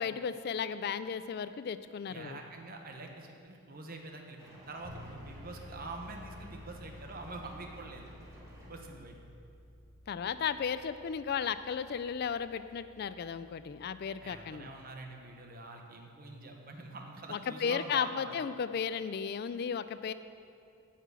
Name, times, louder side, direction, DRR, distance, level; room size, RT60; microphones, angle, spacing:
voice 1, 0.0-2.4 10.1-14.7 17.3-20.1, left 7 dB, 50° left, 13 dB, 0.3 m, -35 dB
voice 2, 2.1-8.1 8.7-9.2 14.2-18.4, right 2 dB, 45° right, 3 dB, 1.0 m, -45 dB
sound 1, 4.4-8.8, equal, 15° right, 1.9 m, -54 dB
Bass guitar, 4.8-14.6, equal, 75° right, 2.4 m, -53 dB
9.4 x 5.8 x 8.2 m, 2.5 s
head